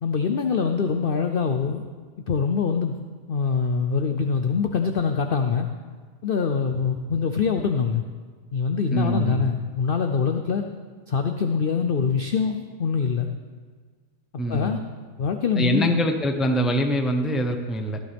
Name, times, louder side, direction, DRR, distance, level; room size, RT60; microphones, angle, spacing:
voice 1, 0.0-1.8 2.2-3.0 3.3-5.7 6.2-8.0 8.5-10.6 11.1-13.3 14.5-14.8 15.2-16.1, left 5 dB, 65° left, 5 dB, 0.5 m, -24 dB
voice 2, 8.9-9.5 14.4-14.9 15.6-18.0, equal, ahead, 4 dB, 0.5 m, -24 dB
15.5 x 12.0 x 3.5 m, 1.5 s
omnidirectional pair, 1.7 m